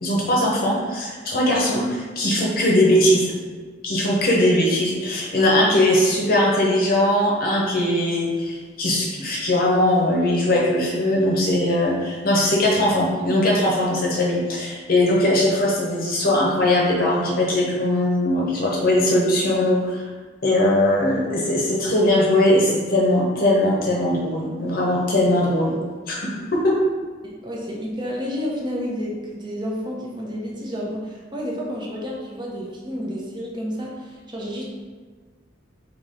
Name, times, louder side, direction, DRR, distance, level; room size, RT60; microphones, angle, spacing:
voice 1, 0.0-3.3 3.8-20.0 20.4-25.7 26.1-26.8, left 1 dB, 50° left, -3 dB, 0.8 m, -20 dB
voice 2, 27.2-34.6, equal, 25° right, -3 dB, 0.8 m, -30 dB
3.7 x 2.9 x 4.1 m, 1.5 s
head